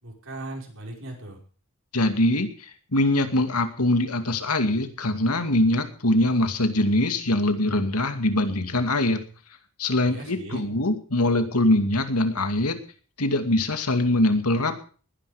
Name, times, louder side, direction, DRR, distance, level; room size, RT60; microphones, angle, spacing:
voice 1, 0.0-1.4 10.0-10.6, right 1 dB, 60° right, 1 dB, 5.2 m, -38 dB
voice 2, 1.9-9.2 9.8-12.8 13.2-14.7, left 1 dB, 85° left, 8 dB, 2.4 m, -23 dB
20.0 x 10.5 x 5.1 m, 0.40 s
head